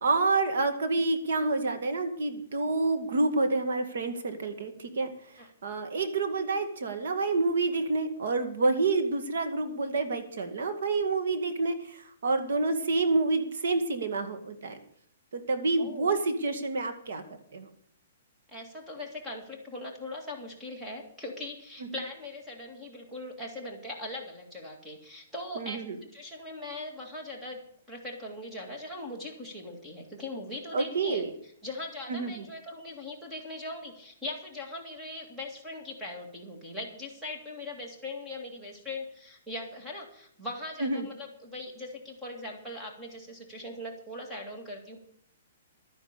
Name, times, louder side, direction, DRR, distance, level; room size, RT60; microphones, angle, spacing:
voice 1, 0.0-14.8 15.3-17.2 17.5-17.7 25.6-26.0 30.7-31.3 32.1-32.5 40.8-41.1, right 3 dB, 65° right, 8 dB, 2.0 m, -28 dB
voice 2, 15.8-16.1 18.5-25.8 26.1-27.6 27.9-31.2 31.6-45.0, left 2 dB, 5° right, 0 dB, 2.2 m, -40 dB
12.5 x 9.8 x 6.8 m, 0.63 s
hypercardioid pair, 170°, 0 cm